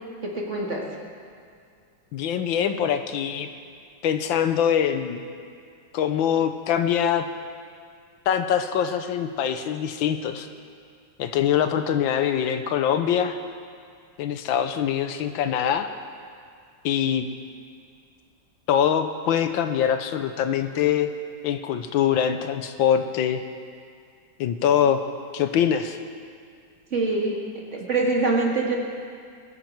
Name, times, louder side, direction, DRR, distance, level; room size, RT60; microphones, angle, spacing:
voice 1, 0.2-0.9 26.9-27.4 27.7-28.8, right 3 dB, 40° right, -1 dB, 2.0 m, -24 dB
voice 2, 2.1-3.5 4.0-5.2 5.9-7.3 8.3-10.5 11.2-13.4 14.2-15.9 16.8-17.3 18.7-21.1 21.4-23.4 24.4-25.0 25.3-26.0, left 9 dB, 85° left, 8 dB, 1.5 m, -23 dB
21.0 x 9.4 x 4.6 m, 2.3 s
omnidirectional pair, 2.1 m